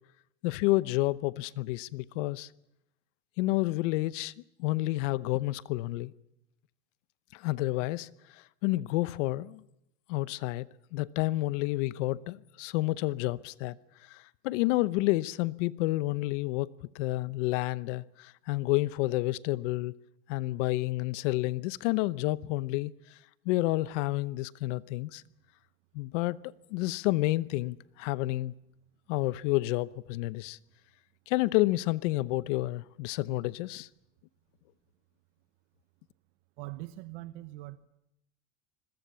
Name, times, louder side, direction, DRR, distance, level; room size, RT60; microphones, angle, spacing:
voice 1, 0.4-2.5 3.4-4.3 4.6-6.1 7.3-8.1 8.6-9.6 10.1-13.8 14.0-16.7 16.9-19.9 20.3-22.9 23.4-25.2 25.9-26.4 26.7-28.5 29.1-30.6 31.3-33.9, left 19 dB, 80° left, 0.9 m, -30 dB
voice 2, 36.6-37.8, right 17 dB, 70° right, 1.1 m, -42 dB
27.5 x 21.5 x 7.0 m
cardioid pair, 145°, 36 cm